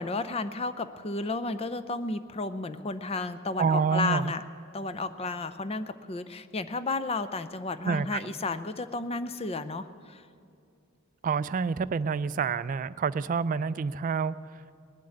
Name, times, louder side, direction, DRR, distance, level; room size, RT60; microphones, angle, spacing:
voice 1, 0.0-4.4 4.7-10.2, left 3 dB, 30° left, 13 dB, 0.6 m, -32 dB
voice 2, 3.6-4.3 7.8-8.2 11.2-14.8, right 5 dB, 40° right, 16 dB, 0.3 m, -28 dB
19.5 x 7.6 x 9.8 m, 2.4 s
head